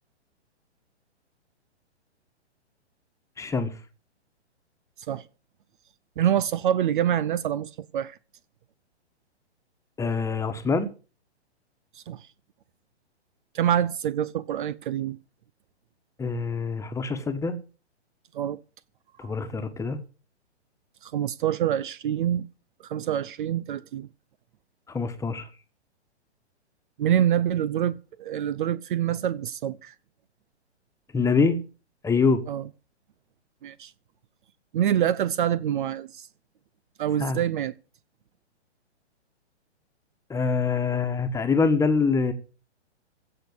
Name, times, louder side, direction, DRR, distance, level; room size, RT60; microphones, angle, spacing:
voice 1, 3.4-3.8 10.0-10.9 16.2-17.6 19.2-20.0 24.9-25.5 31.1-31.6 32.0-32.5 37.2-37.4 40.3-42.3, left 4 dB, 10° left, 1.5 m, -25 dB
voice 2, 6.2-8.2 11.9-12.3 13.5-15.2 18.3-18.6 19.2-19.3 21.0-22.5 22.8-24.1 27.0-29.9 32.5-32.6 33.6-33.9 34.7-36.3 37.0-37.7, right 10 dB, 45° right, 0.7 m, -26 dB
16.0 x 6.4 x 8.2 m
hypercardioid pair, 130°, 34 cm